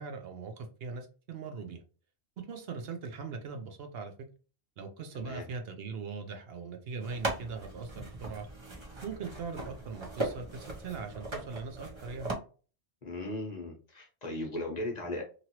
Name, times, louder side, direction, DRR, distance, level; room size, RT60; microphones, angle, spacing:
voice 1, 0.0-1.8 2.4-4.1 4.8-8.5 9.0-12.3, right 5 dB, 65° right, 0.8 m, -40 dB
sound 1, 7.0-12.3, right 2 dB, 30° right, 0.6 m, -39 dB
voice 2, 13.0-15.2, left 1 dB, 40° left, 0.8 m, -37 dB
2.9 x 2.5 x 2.8 m
omnidirectional pair, 1.2 m